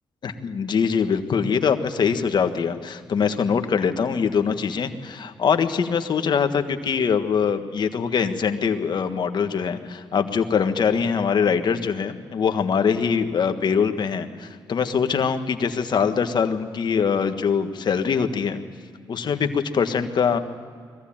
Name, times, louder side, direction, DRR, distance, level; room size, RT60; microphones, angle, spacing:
voice 1, 0.2-18.6 19.1-20.4, left 6 dB, 60° left, 8 dB, 1.5 m, -23 dB
21.5 x 15.0 x 8.8 m, 2.1 s
cardioid pair, 65°, 8 cm